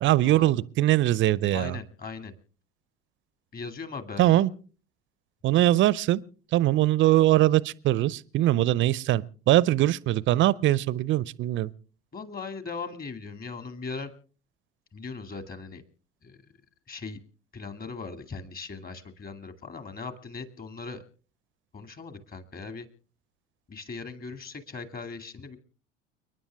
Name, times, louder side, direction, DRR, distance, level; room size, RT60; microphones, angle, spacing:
voice 1, 0.0-1.8 4.2-4.5 5.4-6.2 6.5-11.7, right 14 dB, 40° right, 0.7 m, -22 dB
voice 2, 1.5-2.3 3.5-4.5 12.1-14.1 14.9-15.8 16.2-16.4 16.9-17.2 17.5-21.0 21.7-22.9 23.7-25.6, left 4 dB, 30° left, 2.4 m, -39 dB
30.0 x 10.0 x 3.5 m
figure-of-eight pair, 65°, 31 cm